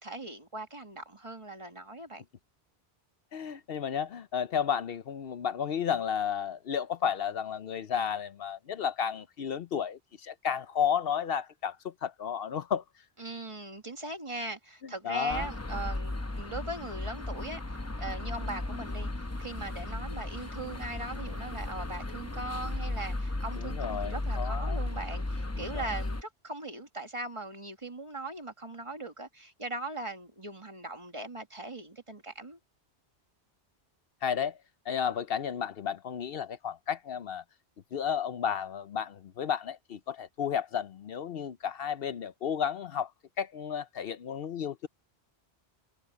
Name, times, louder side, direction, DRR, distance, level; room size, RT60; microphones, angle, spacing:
voice 1, 0.0-2.2 13.2-19.1 19.4-32.6, right 2 dB, 30° right, 1.8 m, -40 dB
voice 2, 3.3-12.8 15.0-15.5 23.6-24.9 25.6-25.9 34.2-34.6 34.9-37.4 37.9-43.1 43.4-44.9, left 8 dB, 65° left, 0.9 m, -32 dB
sound 1, 15.3-26.2, left 2 dB, 15° left, 0.8 m, -35 dB
omnidirectional pair, 1.1 m